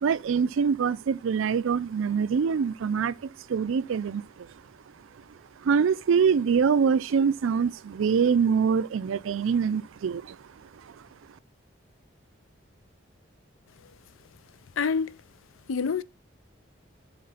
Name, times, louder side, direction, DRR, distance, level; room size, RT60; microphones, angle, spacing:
voice 1, 0.0-4.5 5.6-10.4, right 6 dB, 80° right, 0.4 m, -24 dB
voice 2, 14.8-15.1 15.7-16.0, left 5 dB, 80° left, 0.5 m, -26 dB
7.7 x 3.7 x 5.6 m
head